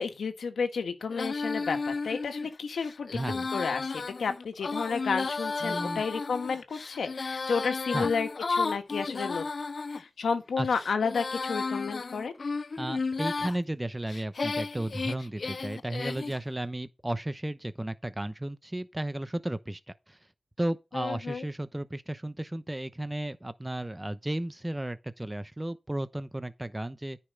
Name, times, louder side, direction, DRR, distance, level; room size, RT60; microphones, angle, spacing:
voice 1, 0.0-9.4 9.9-12.3 20.9-21.4, left 5 dB, 90° left, 1.5 m, -31 dB
Female singing, 1.1-10.0 10.6-13.6 14.1-16.4, left 4 dB, 60° left, 0.5 m, -33 dB
voice 2, 3.1-3.5 5.6-6.0 7.9-8.1 10.6-10.7 12.8-19.8 20.1-20.2 20.6-27.2, right 1 dB, 15° right, 0.9 m, -34 dB
9.9 x 5.5 x 5.2 m
cardioid pair, 50°, 0 cm